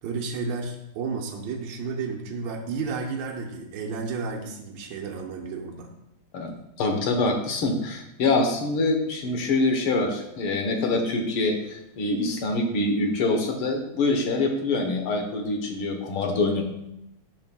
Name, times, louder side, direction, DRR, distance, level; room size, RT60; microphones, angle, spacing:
voice 1, 0.0-5.9, right 4 dB, 70° right, 0 dB, 1.4 m, -32 dB
voice 2, 6.8-16.6, left 2 dB, 85° left, 4 dB, 1.9 m, -25 dB
10.5 x 6.2 x 2.2 m, 0.87 s
omnidirectional pair, 2.3 m